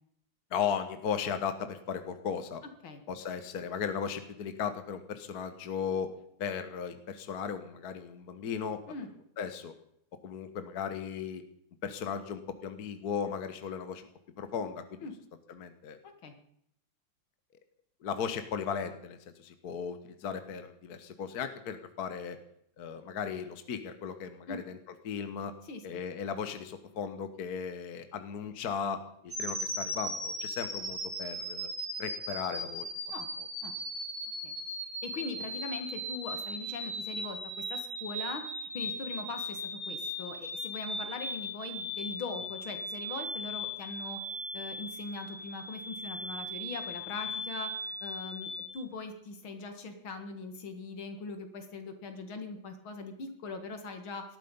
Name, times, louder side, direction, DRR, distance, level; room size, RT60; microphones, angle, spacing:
voice 1, 0.5-2.6 3.1-6.1 6.4-8.8 9.4-9.7 10.2-11.4 11.8-14.1 14.4-15.1 15.5-16.0 18.0-22.4 22.8-24.8 25.0-25.5 25.8-31.7 32.0-32.9 33.4-33.5, left 7 dB, 50° left, 9 dB, 1.6 m, -36 dB
voice 2, 25.7-26.0 33.1-33.3 33.6-33.7 34.4-34.5 35.0-44.2 44.5-54.4, left 3 dB, 75° left, 7 dB, 2.8 m, -41 dB
sound 1, 29.3-48.7, equal, 20° right, 6.2 m, -38 dB
19.0 x 13.0 x 5.5 m, 0.72 s
omnidirectional pair, 2.3 m